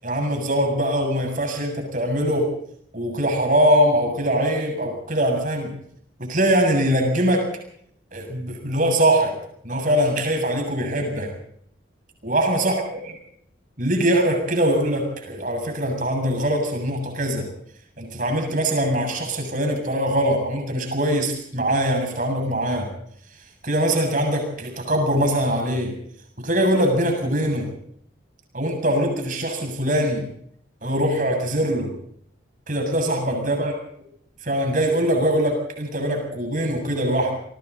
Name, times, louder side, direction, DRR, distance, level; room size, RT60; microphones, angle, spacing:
voice 1, 0.0-2.5 2.9-5.7 6.2-7.5 8.1-9.4 9.6-11.3 12.2-12.8 13.8-17.5 18.0-22.9 23.6-25.9 26.4-27.7 28.5-30.2 30.8-31.9 32.7-33.7 34.4-37.3, equal, 45° right, 4 dB, 7.4 m, -22 dB
27.5 x 23.0 x 4.2 m, 0.68 s
head